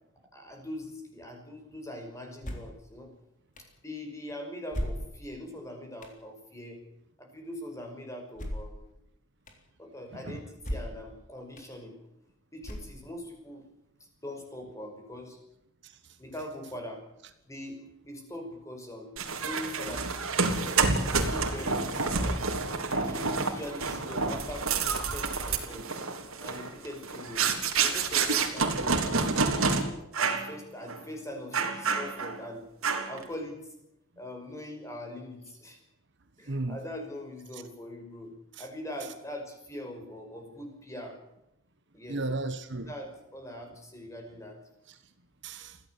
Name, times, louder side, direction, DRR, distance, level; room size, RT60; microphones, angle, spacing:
voice 1, 0.3-3.1 3.8-6.8 7.2-8.9 9.8-12.1 12.5-13.7 14.0-15.4 16.2-17.0 17.5-20.1 21.2-22.3 22.8-25.9 26.4-27.4 27.8-29.3 30.1-33.7 34.2-35.8 36.4-38.3 38.6-41.2 41.9-42.2 42.8-44.6, left 1 dB, 15° left, 3 dB, 5.8 m, -42 dB
sound 1, 2.4-2.8 3.6-3.7 4.7-5.4 6.0-6.2 8.3-8.8 9.5-9.6 10.6-11.1 11.6-11.7 12.6-13.2, equal, 35° left, 3.8 m, -36 dB
sound 2, 19.2-29.8 30.1-30.5 30.9-31.0 31.5-32.4 32.8-33.2, right 4 dB, 75° right, 3.5 m, -28 dB
voice 2, 36.5-36.8 37.5-37.6 38.6-38.7 42.1-42.9 44.9-45.0 45.4-45.8, right 2 dB, 55° right, 10 dB, 1.4 m, -34 dB
23.0 x 16.0 x 8.6 m, 0.82 s
head